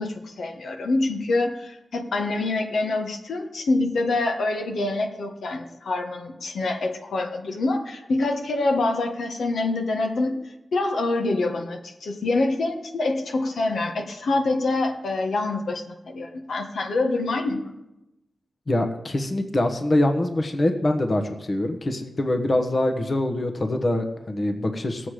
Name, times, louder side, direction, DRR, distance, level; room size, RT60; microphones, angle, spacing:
voice 1, 0.0-10.4 10.7-17.7, left 2 dB, 85° left, 3 dB, 1.3 m, -26 dB
voice 2, 18.7-25.1, left 1 dB, 40° left, 5 dB, 1.3 m, -24 dB
18.0 x 7.7 x 5.0 m, 0.94 s
wide cardioid pair, 90°, 0 cm